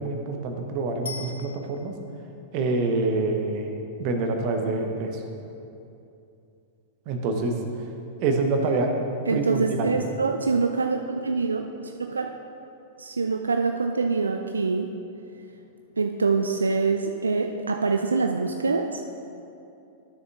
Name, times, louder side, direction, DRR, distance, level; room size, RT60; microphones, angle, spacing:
voice 1, 0.0-1.9 2.5-3.7 4.0-5.2 7.1-7.6 8.2-8.9 9.3-9.9, right 3 dB, 45° right, 4 dB, 0.9 m, -26 dB
Bicycle bell, 1.1-2.2 11.2-11.3, left 4 dB, 70° left, 0.6 m, -40 dB
voice 2, 9.3-12.3 13.0-14.9 16.0-19.0, right 4 dB, 80° right, 4 dB, 0.3 m, -25 dB
12.5 x 6.6 x 2.4 m, 2.7 s
figure-of-eight pair, 95°, 0 cm